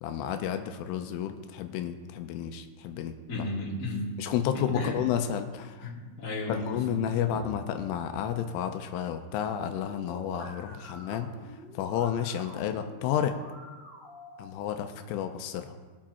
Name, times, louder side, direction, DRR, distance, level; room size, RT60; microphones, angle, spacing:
voice 1, 0.0-3.4 4.2-5.9 6.5-11.3 11.7-13.4 14.4-15.7, left 9 dB, 90° left, 6 dB, 3.4 m, -31 dB
voice 2, 3.3-4.1 4.5-4.9 5.8-6.9 7.2-7.4, left 2 dB, 20° left, -7 dB, 2.7 m, -34 dB
sound 1, 9.5-14.5, equal, 15° right, 2.6 m, -48 dB
20.5 x 7.5 x 4.4 m, 1.4 s
omnidirectional pair, 5.7 m